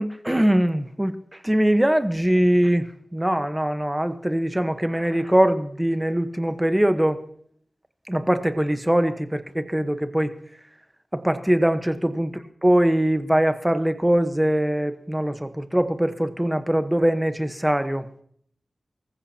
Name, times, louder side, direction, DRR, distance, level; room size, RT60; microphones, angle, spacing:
voice 1, 0.0-7.2 8.1-10.3 11.1-18.1, right 1 dB, 10° right, 10 dB, 1.1 m, -22 dB
24.0 x 15.0 x 2.9 m, 0.63 s
wide cardioid pair, 55°, 0 cm